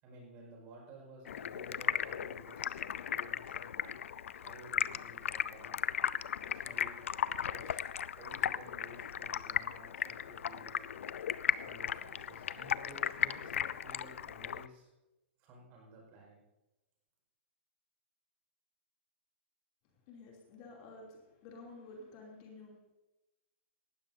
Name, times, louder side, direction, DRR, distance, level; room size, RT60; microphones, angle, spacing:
voice 1, 0.0-3.9 4.3-5.8 6.5-7.0 7.4-7.8 8.0-11.0 11.6-14.9 15.4-16.4, right 2 dB, 25° right, -1 dB, 5.2 m, -54 dB
Stream, 1.3-14.7, left 9 dB, 85° left, 0.5 m, -36 dB
voice 2, 20.1-22.8, left 3 dB, 30° left, -1 dB, 3.0 m, -51 dB
18.5 x 15.5 x 2.7 m, 1.0 s
hypercardioid pair, 170°, 7 cm